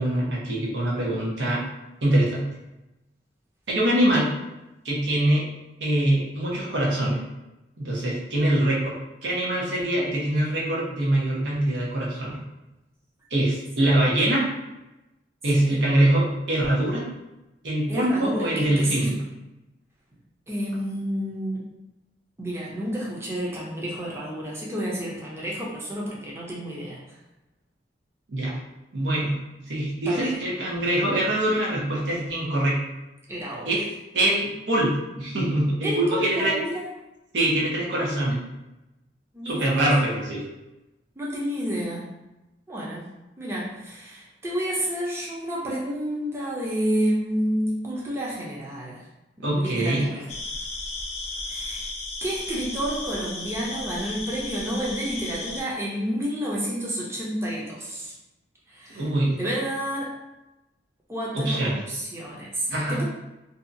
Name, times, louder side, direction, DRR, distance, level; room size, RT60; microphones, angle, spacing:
voice 1, 0.0-1.6 2.0-2.4 3.7-4.3 4.8-5.5 5.8-7.2 7.8-12.4 13.3-14.5 15.4-17.0 17.6-19.2 28.3-28.5 28.9-29.4 29.7-32.8 33.7-33.9 34.1-36.5 37.3-38.4 39.4-40.4 49.4-50.1 58.9-59.4 61.3-61.8 62.7-63.0, right 1 dB, 85° right, -5 dB, 0.9 m, -23 dB
voice 2, 17.9-19.2 20.5-21.6 22.4-27.0 30.1-30.3 33.3-33.7 35.8-36.8 39.3-39.9 41.2-42.1 42.7-43.0 43.4-49.0 49.4-50.3 51.5-51.9 52.2-58.1 58.7-59.1 59.4-60.1 61.1-63.0, equal, 15° right, -5 dB, 0.5 m, -30 dB
sound 1, 50.3-55.6, left 2 dB, 40° left, 0.5 m, -34 dB
2.7 x 2.3 x 2.6 m, 0.99 s
head